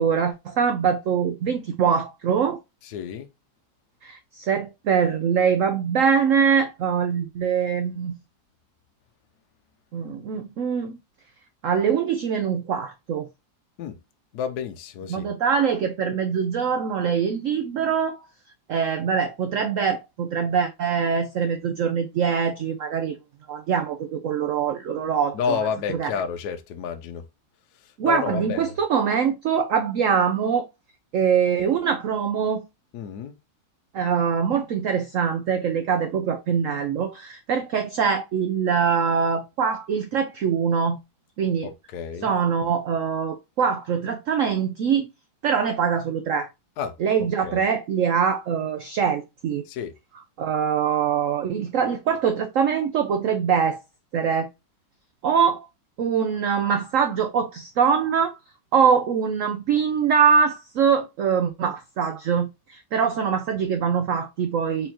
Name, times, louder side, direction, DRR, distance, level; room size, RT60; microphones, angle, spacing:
voice 1, 0.0-2.6 4.0-8.2 9.9-11.0 11.6-13.3 15.1-18.2 18.7-23.2 23.5-25.6 25.9-26.1 28.0-30.7 31.1-32.6 33.9-41.0 41.4-41.7 42.2-45.1 45.4-46.5 47.0-49.6 50.4-53.8 54.1-54.5 55.2-55.7 56.0-58.4 58.7-64.9, right 7 dB, 90° right, 0.6 m, -23 dB
voice 2, 2.8-3.3 13.8-14.0 14.3-15.3 25.3-27.2 27.7-28.7 32.9-33.3 41.6-42.3 46.8-46.9 47.4-47.6 49.7-49.9, left 7 dB, 70° left, 1.1 m, -30 dB
4.5 x 3.9 x 2.8 m
omnidirectional pair, 2.0 m